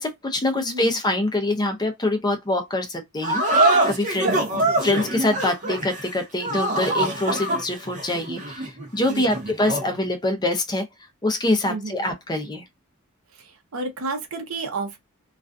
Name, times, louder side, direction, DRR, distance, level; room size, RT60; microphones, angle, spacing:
voice 1, 0.0-10.9 11.2-12.6, left 1 dB, 20° left, 0.5 m, -25 dB
voice 2, 0.5-1.0 4.2-4.6 9.1-9.4 11.7-12.0 13.4-15.0, right 3 dB, 80° right, 0.7 m, -32 dB
sound 1, 3.2-9.9, right 2 dB, 35° right, 0.8 m, -24 dB
2.4 x 2.2 x 2.4 m
head